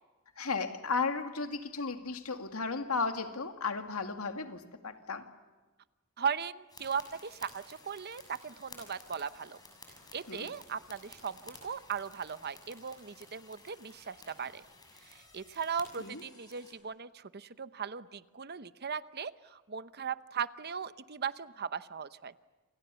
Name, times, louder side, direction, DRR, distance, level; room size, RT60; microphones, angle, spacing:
voice 1, 0.4-5.3 10.3-10.5 16.0-16.2, left 4 dB, 80° left, 7 dB, 2.3 m, -34 dB
voice 2, 6.2-9.6 10.1-14.6 15.0-22.3, right 6 dB, 50° right, 14 dB, 0.9 m, -38 dB
sound 1, 6.7-16.7, left 3 dB, 20° left, 6.9 m, -55 dB
28.5 x 28.0 x 7.0 m, 1.2 s
head